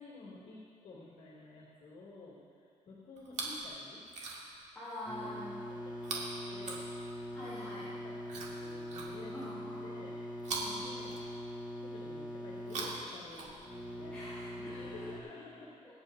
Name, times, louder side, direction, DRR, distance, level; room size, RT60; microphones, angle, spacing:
voice 1, 0.0-4.0 5.2-6.9 7.6-9.4 9.8-11.1 11.7-14.2 14.6-15.9, left 3 dB, 80° left, -6 dB, 2.7 m, -52 dB
Chewing mastication, 3.2-3.7 4.0-4.7 6.0-7.4 8.3-9.5 10.4-11.7 12.5-13.9 14.9-15.0, right 3 dB, 70° right, 2.1 m, -42 dB
voice 2, 4.7-5.6 7.3-7.9 9.3-10.0 10.6-10.9 14.1-15.1, left 1 dB, 15° left, -10 dB, 3.0 m, -45 dB
sound 1, 5.1-15.2, equal, 10° right, 1.7 m, -43 dB
25.5 x 8.7 x 2.7 m, 2.5 s
wide cardioid pair, 160°, 12 cm